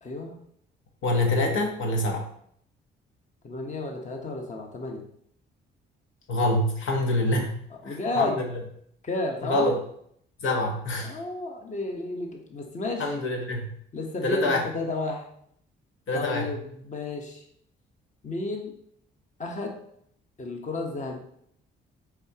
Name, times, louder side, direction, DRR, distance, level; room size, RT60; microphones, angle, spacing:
voice 1, 0.0-0.3 3.4-5.1 7.8-8.4 9.0-9.7 11.0-13.1 13.9-15.3 16.1-17.4 18.2-18.7 19.4-19.8 20.4-21.2, left 2 dB, 35° left, 2 dB, 1.2 m, -32 dB
voice 2, 1.0-2.3 6.3-7.5 7.8-8.5 9.4-9.8 10.4-11.2 13.0-13.7 14.2-14.6 16.1-16.5, left 1 dB, 75° left, 1 dB, 1.2 m, -26 dB
6.6 x 4.9 x 2.9 m, 0.67 s
cardioid pair, 90°, 20 cm